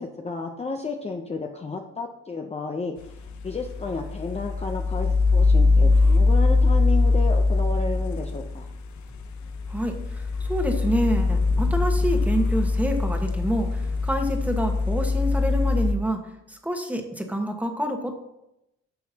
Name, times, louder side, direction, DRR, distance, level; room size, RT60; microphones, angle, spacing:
voice 1, 0.0-8.7, left 4 dB, 20° left, 3 dB, 0.7 m, -32 dB
sound 1, 3.0-15.9, left 3 dB, 70° left, 0.8 m, -22 dB
voice 2, 9.7-16.2 16.5-18.1, right 1 dB, 5° right, 4 dB, 1.3 m, -27 dB
10.5 x 6.4 x 2.9 m, 0.84 s
cardioid pair, 90°, 30 cm